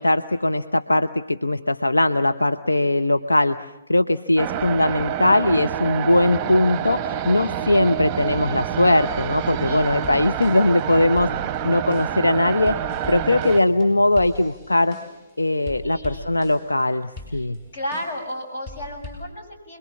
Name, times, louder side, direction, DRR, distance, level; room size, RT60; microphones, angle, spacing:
voice 1, 0.0-3.6 3.9-11.3 11.6-12.7 13.1-15.0 15.4-17.6, left 2 dB, 90° left, 9 dB, 0.9 m, -20 dB
sound 1, 4.4-13.6, right 10 dB, 20° right, 0.8 m, -27 dB
voice 2, 9.5-10.4 15.8-16.3 17.3-17.5 17.7-19.8, equal, 55° left, 5 dB, 7.1 m, -34 dB
sound 2, 9.8-10.8 11.2-15.3 15.7-16.8 17.2-18.3 18.7-19.2, left 1 dB, 35° left, 7.7 m, -40 dB
29.0 x 22.5 x 7.2 m, 1.0 s
figure-of-eight pair, 135°, 0 cm